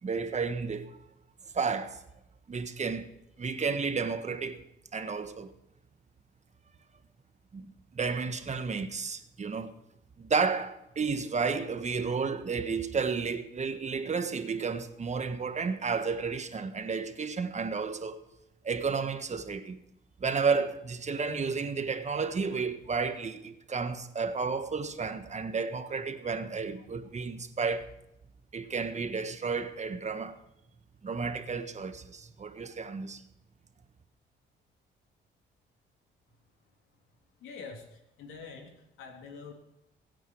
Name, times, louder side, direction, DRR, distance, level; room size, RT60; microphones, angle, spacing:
voice 1, 0.0-1.0 1.5-2.0 2.5-3.1 3.4-4.6 4.9-5.5 7.5-9.7 10.2-18.2 18.6-19.8 20.2-27.9 28.5-30.4 31.0-33.2, right 5 dB, 35° right, 1.5 m, -32 dB
voice 2, 37.4-39.5, left 5 dB, 90° left, 3.4 m, -46 dB
23.0 x 9.2 x 4.7 m
cardioid pair, 90°, 20 cm